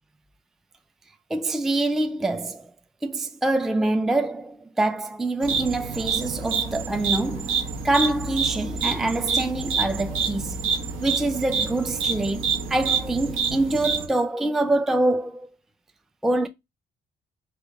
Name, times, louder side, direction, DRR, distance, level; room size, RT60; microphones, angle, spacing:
voice 1, 1.3-2.7 3.0-10.7 11.0-15.5 16.2-16.5, right 2 dB, ahead, 0.4 m, -25 dB
sound 1, 5.4-14.1, right 5 dB, 85° right, 1.0 m, -27 dB
3.6 x 3.2 x 3.4 m
cardioid pair, 90°, 20 cm